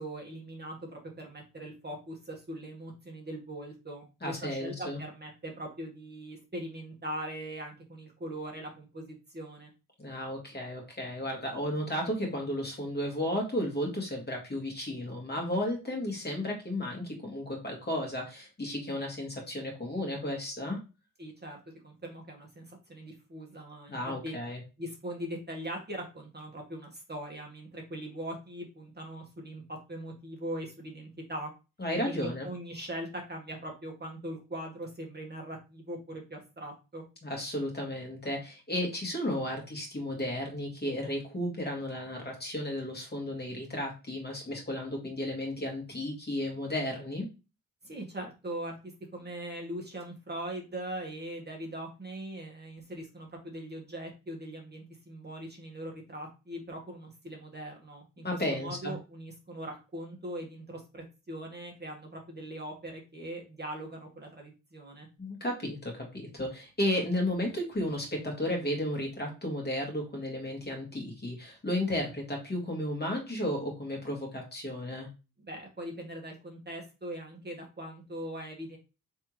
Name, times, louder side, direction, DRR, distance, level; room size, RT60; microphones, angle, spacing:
voice 1, 0.0-9.7 21.2-24.4 24.8-31.5 32.1-37.0 47.8-48.8 49.1-65.1 75.4-78.8, right 1 dB, 30° right, 0 dB, 1.4 m, -41 dB
voice 2, 4.2-5.0 10.0-20.8 23.9-24.6 31.8-32.5 37.2-47.3 58.2-58.9 65.2-75.1, left 1 dB, 30° left, 0 dB, 1.8 m, -33 dB
3.6 x 3.4 x 3.1 m, 0.30 s
cardioid pair, 55°, 32 cm